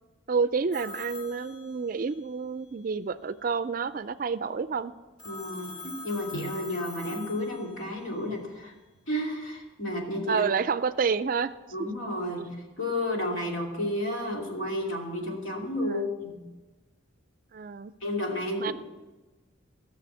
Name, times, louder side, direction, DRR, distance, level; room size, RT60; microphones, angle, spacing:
voice 1, 0.3-4.9 10.3-11.5 12.4-12.5 15.9-16.0 17.5-17.9 18.6-18.7, right 5 dB, 45° right, 14 dB, 0.4 m, -29 dB
Telephone, 0.7-2.2 5.2-8.0, left 3 dB, 25° left, 2.9 m, -43 dB
voice 2, 5.2-8.7 9.1-10.5 11.7-16.4 18.0-18.7, left 1 dB, 80° left, -1 dB, 2.8 m, -32 dB
16.0 x 6.7 x 7.0 m, 1.2 s
head